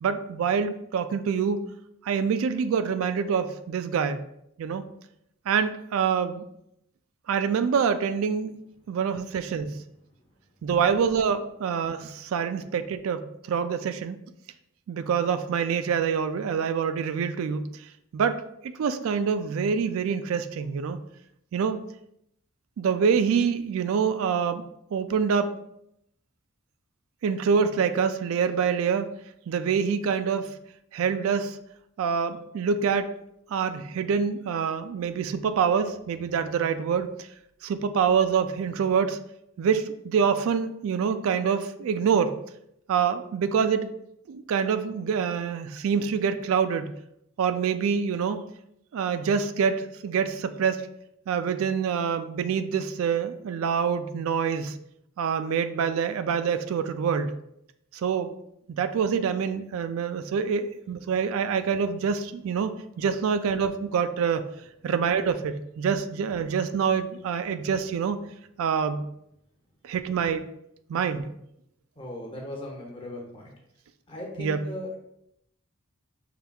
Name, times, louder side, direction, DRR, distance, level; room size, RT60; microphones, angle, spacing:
voice 1, 0.0-1.6 2.0-4.2 4.6-4.8 5.5-6.4 7.3-8.6 8.9-9.8 10.6-14.2 14.9-17.9 18.1-21.0 21.5-21.8 22.8-24.6 24.9-25.6 27.2-29.1 29.5-30.5 30.9-31.6 32.0-33.1 33.5-37.3 37.6-39.2 39.6-42.4 42.9-43.9 44.3-46.9 47.4-48.4 48.9-50.8 51.3-54.8 55.2-57.3 57.9-58.3 58.7-64.5 64.8-68.2 68.6-69.0 69.8-70.5 70.9-71.3 74.4-74.7, right 6 dB, 75° right, 10 dB, 0.3 m, -26 dB
voice 2, 72.0-73.5 74.1-74.9, left 1 dB, 25° left, -1 dB, 0.8 m, -37 dB
5.7 x 3.3 x 2.3 m, 0.76 s
head